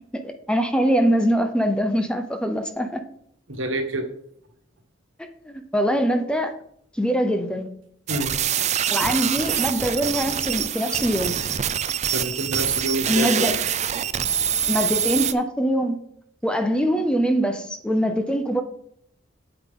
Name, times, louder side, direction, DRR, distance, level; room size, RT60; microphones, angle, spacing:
voice 1, 0.2-3.0 5.2-6.5 7.0-7.7 8.9-11.4 13.1-13.5 14.7-16.0 16.4-18.6, equal, 5° left, 7 dB, 0.7 m, -23 dB
voice 2, 3.5-4.1 8.1-8.3 12.1-13.5 14.2-14.3, right 1 dB, 80° right, 5 dB, 1.6 m, -27 dB
sound 1, 8.1-15.3, right 9 dB, 35° right, 0.5 m, -25 dB
8.8 x 8.0 x 3.8 m, 0.68 s
head